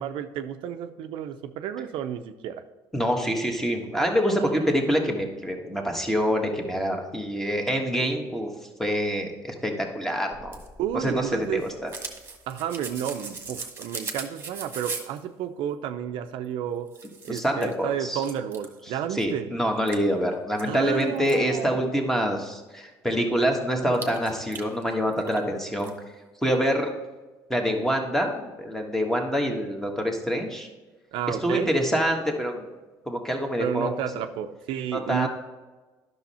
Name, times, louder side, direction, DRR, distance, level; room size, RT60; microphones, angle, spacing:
voice 1, 0.0-2.6 4.4-4.8 10.8-11.6 12.5-16.9 17.2-19.5 20.6-21.8 31.1-31.8 33.6-35.3, right 9 dB, 75° right, 8 dB, 0.6 m, -31 dB
voice 2, 2.9-8.5 8.8-10.6 11.0-11.9 17.3-18.2 19.2-25.9 26.4-26.9 27.5-30.7 31.3-32.7 33.1-34.0 34.9-35.3, equal, 5° left, 2 dB, 1.5 m, -26 dB
sound 1, 10.3-15.2 16.4-16.5 16.9-17.7 18.2-18.8 19.2-19.3 19.9-21.4 23.9-25.5 25.8-25.9, right 4 dB, 25° right, 1.4 m, -39 dB
10.0 x 6.3 x 4.3 m, 1.3 s
cardioid pair, 105°, 9 cm